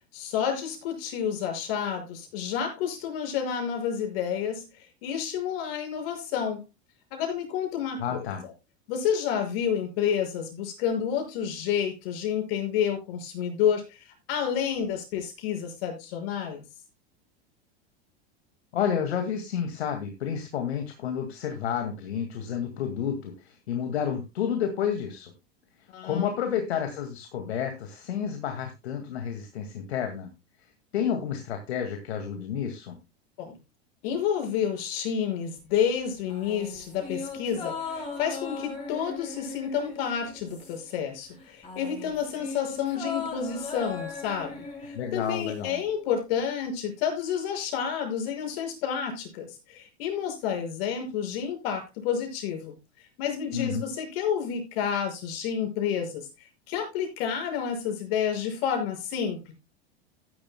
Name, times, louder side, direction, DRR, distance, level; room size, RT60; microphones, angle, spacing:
voice 1, 0.1-6.6 7.1-8.5 8.9-16.6 25.9-26.3 33.4-33.6 34.0-56.3 56.7-59.5, left 8 dB, 60° left, 6.1 m, -30 dB
voice 2, 8.0-8.4 18.7-25.3 26.0-30.3 30.9-33.0 44.9-45.8 53.5-53.8, left 8 dB, 80° left, 2.2 m, -30 dB
sound 1, 36.3-41.0 41.3-45.6 45.9-46.0, left 4 dB, 20° left, 7.6 m, -38 dB
15.0 x 11.5 x 2.2 m
hypercardioid pair, 105°, 32 cm